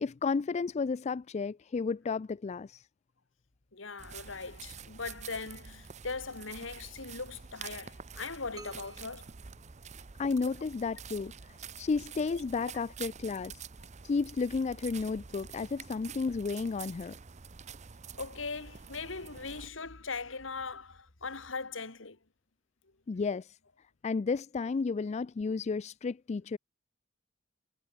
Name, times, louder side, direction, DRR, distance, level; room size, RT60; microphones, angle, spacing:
voice 1, 0.0-2.8 10.2-13.6 14.0-17.1 23.1-23.6 24.0-26.6, left 4 dB, 35° left, 0.4 m, -32 dB
voice 2, 3.7-9.4 12.3-12.4 18.2-22.2, left 4 dB, 80° left, 2.3 m, -40 dB
sound 1, 4.0-19.7, right 6 dB, 35° right, 0.7 m, -47 dB
sound 2, 8.6-10.5, right 2 dB, 20° right, 5.1 m, -53 dB
head